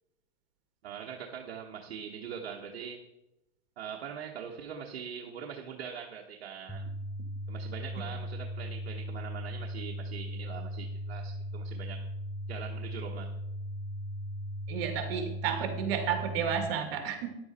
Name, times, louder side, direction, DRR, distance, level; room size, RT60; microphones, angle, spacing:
voice 1, 0.8-3.0 3.8-6.9 7.5-12.0 12.5-13.3, right 7 dB, 90° right, 1 dB, 1.2 m, -42 dB
sound 1, 6.7-16.7, equal, 10° left, 1.0 m, -38 dB
voice 2, 14.7-17.3, right 8 dB, 65° right, 6 dB, 2.1 m, -32 dB
10.5 x 7.8 x 4.2 m, 0.90 s
supercardioid pair, 130°, 31 cm